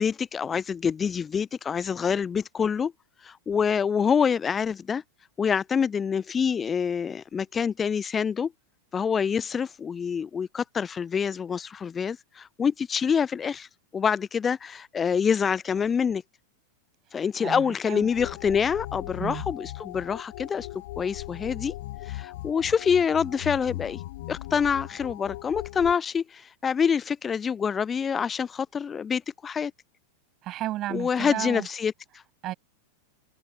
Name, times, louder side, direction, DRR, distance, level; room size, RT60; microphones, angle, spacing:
voice 1, 0.0-2.9 3.2-5.0 5.4-8.5 8.9-16.2 17.1-20.7 21.0-21.7 22.0-24.0 24.3-29.7 30.9-32.2, left 6 dB, 20° left, 0.6 m, -26 dB
voice 2, 17.4-18.1 19.2-19.4 30.4-31.7 32.4-32.5, right 15 dB, 35° right, 7.6 m, -33 dB
sound 1, 18.0-25.9, left 17 dB, 55° left, 6.9 m, -38 dB
figure-of-eight pair, 90°, 0 cm